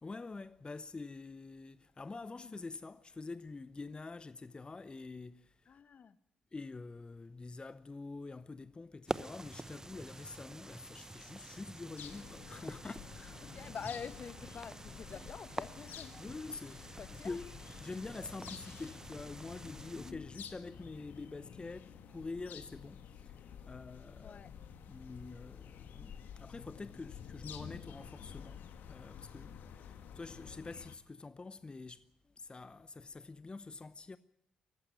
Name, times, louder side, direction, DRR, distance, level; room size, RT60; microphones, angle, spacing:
voice 1, 0.0-5.7 6.5-13.7 16.2-17.5 17.8-24.4 24.9-28.6 28.9-32.1 32.4-34.2, left 3 dB, 25° left, 0.8 m, -46 dB
voice 2, 5.7-6.2 13.4-16.2 17.0-17.4 19.9-20.2 24.2-24.5, left 6 dB, 50° left, 1.0 m, -46 dB
sound 1, 9.1-20.1, right 2 dB, 15° right, 1.0 m, -47 dB
sound 2, 12.0-31.0, left 8 dB, 65° left, 1.6 m, -51 dB
21.0 x 14.5 x 9.4 m
hypercardioid pair, 45°, 3 cm